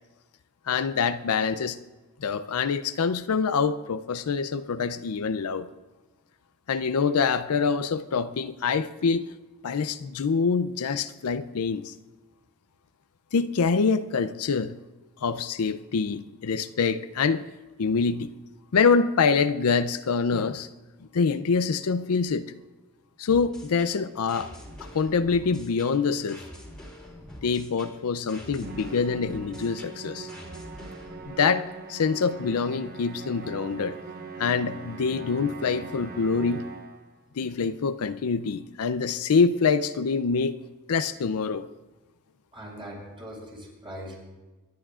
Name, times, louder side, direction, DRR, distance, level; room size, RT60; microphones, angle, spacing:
voice 1, 0.7-1.8 2.2-5.7 6.7-9.3 9.6-11.9 13.3-14.7 15.2-17.4 17.8-18.3 18.7-20.7 21.1-22.5 23.2-24.5 24.9-26.4 27.4-30.3 31.3-34.0 34.4-36.6 37.4-40.5 40.9-41.7, left 5 dB, 75° left, 12 dB, 0.5 m, -25 dB
sound 1, 23.3-31.3, equal, 5° left, 2.8 m, -45 dB
Musical instrument, 28.6-37.1, right 4 dB, 45° right, 1.1 m, -41 dB
voice 2, 42.5-44.1, equal, 25° right, -3 dB, 5.3 m, -40 dB
26.5 x 11.5 x 2.4 m, 1.2 s
head